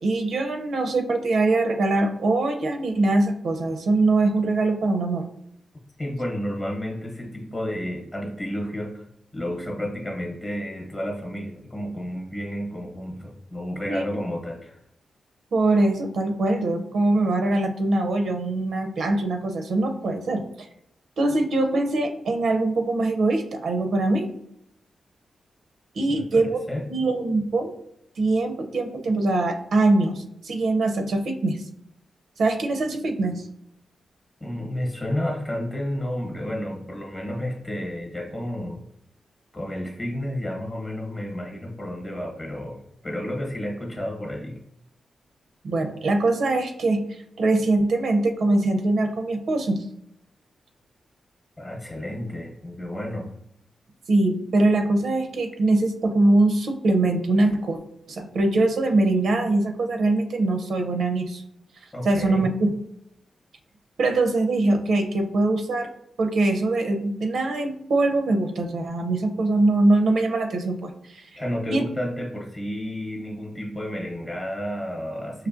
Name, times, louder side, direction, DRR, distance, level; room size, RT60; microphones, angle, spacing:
voice 1, 0.0-5.3 13.9-14.0 15.5-20.4 21.2-24.3 26.0-26.6 26.9-27.7 28.2-31.6 32.4-33.3 45.6-47.0 47.4-49.8 54.1-57.8 58.1-61.4 62.0-62.7 64.0-65.9 66.2-71.3 71.7-71.9, right 2 dB, 75° right, 5 dB, 0.5 m, -22 dB
voice 2, 6.0-9.0 9.3-14.8 26.1-26.8 34.4-38.8 39.5-44.6 51.6-53.3 61.9-62.5 71.4-75.5, equal, 25° left, 0 dB, 0.8 m, -31 dB
4.8 x 2.9 x 2.4 m, 0.76 s
wide cardioid pair, 125°, 0 cm